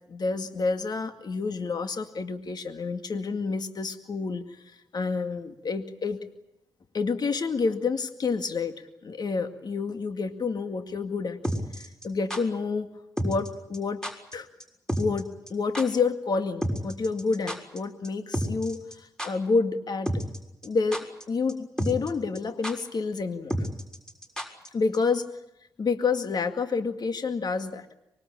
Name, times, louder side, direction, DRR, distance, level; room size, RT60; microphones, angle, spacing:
voice 1, 0.1-6.2 6.9-11.4 11.7-12.9 13.2-14.0 14.3-14.5 15.0-20.1 20.6-23.7 24.7-25.2 25.8-27.9, left 4 dB, 55° left, 7 dB, 2.1 m, -29 dB
sound 1, 11.4-12.4 13.2-13.5 13.7-13.8 14.0-14.3 14.6-14.7 14.9-15.2 15.5-15.6 15.7-15.8 16.6-17.8 18.0-18.1 18.3-18.9 19.2-19.3 20.1-20.4 20.6-21.2 21.5-21.6 21.8-22.1 22.3-22.4 22.6-22.7 23.5-24.7 24.9-25.0, equal, 10° left, 6.5 m, -30 dB
24.5 x 22.5 x 8.8 m, 0.84 s
supercardioid pair, 40°, 8 cm